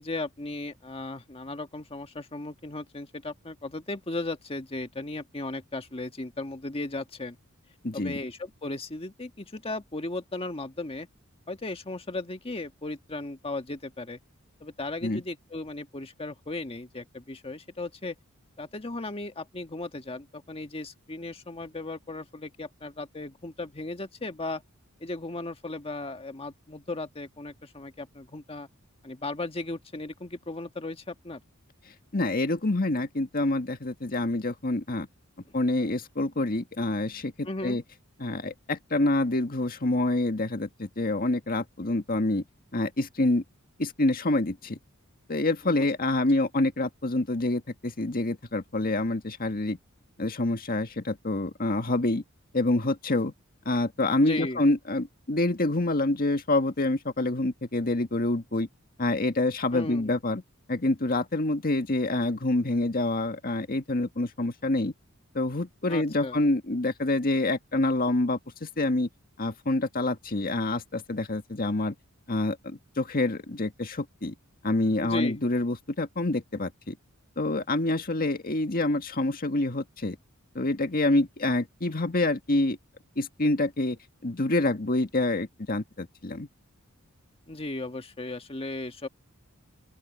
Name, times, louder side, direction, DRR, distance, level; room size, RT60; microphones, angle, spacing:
voice 1, 0.0-7.4 7.9-11.1 11.5-14.2 14.6-18.2 18.6-24.6 25.0-28.7 29.0-31.4 35.5-35.6 37.4-37.8 45.6-45.8 54.3-54.6 59.7-60.1 65.9-66.4 75.0-75.4 87.5-89.1, left 2 dB, 25° left, 1.6 m, -36 dB
voice 2, 7.8-8.2 15.0-15.2 32.1-35.1 35.5-37.8 38.2-42.4 42.7-43.4 43.8-44.8 45.3-49.8 50.2-52.2 52.5-53.3 53.7-58.7 59.0-60.4 60.7-64.9 65.3-69.1 69.4-71.9 72.3-74.3 74.6-77.0 77.4-80.2 80.6-82.8 83.2-84.0 84.2-86.5, left 2 dB, 45° left, 1.8 m, -27 dB
open air
head